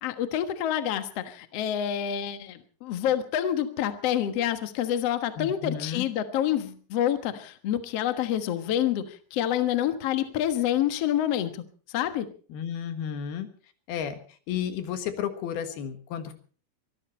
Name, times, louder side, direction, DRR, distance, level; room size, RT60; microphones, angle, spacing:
voice 1, 0.0-11.6 11.9-12.3, left 11 dB, 55° left, 9 dB, 1.9 m, -27 dB
voice 2, 5.4-6.1 12.5-13.5 13.9-14.2 14.5-16.3, left 8 dB, 80° left, 9 dB, 3.5 m, -32 dB
23.5 x 14.0 x 4.3 m, 0.41 s
omnidirectional pair, 4.4 m